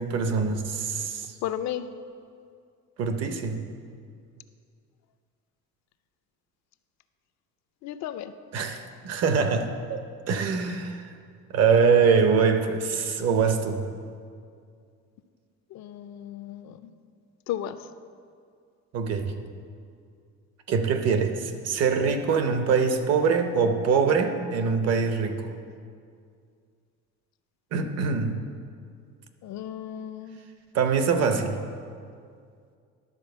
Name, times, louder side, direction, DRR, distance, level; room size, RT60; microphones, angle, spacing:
voice 1, 0.0-1.3 3.0-3.6 8.5-10.0 10.3-11.1 11.5-13.9 18.9-19.4 20.7-25.5 27.7-28.4 30.7-31.6, right 5 dB, 55° right, 7 dB, 0.7 m, -24 dB
voice 2, 1.4-1.9 7.8-8.3 8.6-8.7 15.7-16.8 17.5-17.8 29.4-30.4, left 11 dB, 60° left, 11 dB, 0.4 m, -34 dB
11.5 x 4.2 x 6.6 m, 2.3 s
cardioid pair, 165°, 31 cm